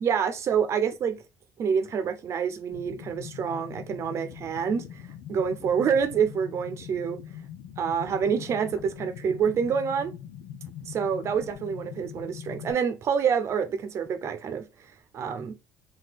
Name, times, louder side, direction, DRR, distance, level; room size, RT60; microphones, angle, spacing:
voice 1, 0.0-1.2 1.6-5.0 5.3-7.2 7.8-10.1 10.9-14.6 15.1-15.5, right 7 dB, 45° right, 0.8 m, -27 dB
sound 1, 2.7-12.7, left 9 dB, 85° left, 0.6 m, -42 dB
4.0 x 2.7 x 4.7 m
cardioid pair, 140°, 7 cm